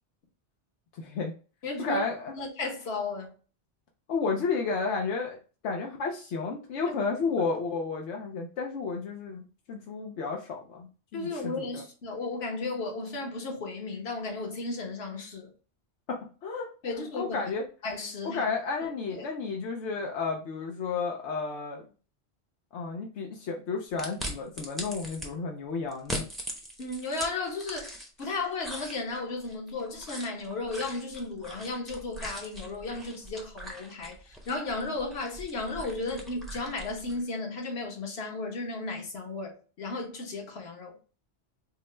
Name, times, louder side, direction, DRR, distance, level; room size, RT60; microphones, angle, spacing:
voice 1, 0.9-1.3 1.8-2.3 4.1-5.4 5.6-11.8 16.1-16.7 17.2-17.6 18.3-21.8 22.7-26.3, left 4 dB, 85° left, 0.9 m, -32 dB
voice 2, 1.6-2.0 2.3-3.3 11.1-15.5 16.8-17.4 17.8-18.4 19.1-19.3 26.8-40.9, left 3 dB, 65° left, 1.2 m, -34 dB
sound 1, 24.0-25.3 25.9-28.3 28.6-37.2, equal, ahead, 0.5 m, -41 dB
4.3 x 2.1 x 3.1 m
omnidirectional pair, 1.1 m